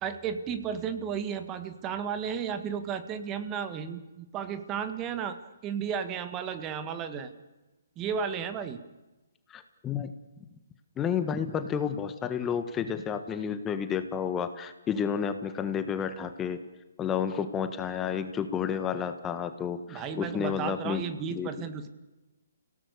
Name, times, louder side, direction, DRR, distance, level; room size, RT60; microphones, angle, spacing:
voice 1, 0.0-7.3 8.0-8.8 19.9-21.9, right 7 dB, 20° right, 10 dB, 1.7 m, -33 dB
voice 2, 9.5-10.1 11.0-16.6 17.0-21.0 21.3-21.5, left 7 dB, 15° left, 9 dB, 1.4 m, -31 dB
29.5 x 18.0 x 6.8 m, 1.1 s
figure-of-eight pair, 135°, 0 cm